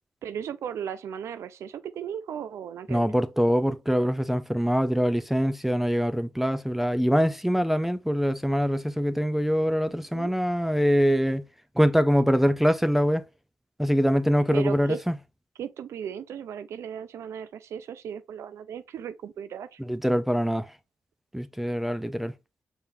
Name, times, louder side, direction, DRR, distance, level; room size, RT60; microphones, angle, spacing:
voice 1, 0.2-3.0 10.1-10.3 14.5-15.0 15.6-19.8, right 8 dB, 80° right, 0.4 m, -36 dB
voice 2, 2.9-11.5 11.8-13.2 13.8-15.1 19.9-20.7 21.3-22.3, equal, 5° right, 0.5 m, -24 dB
5.6 x 3.5 x 2.6 m
supercardioid pair, 50°, 5 cm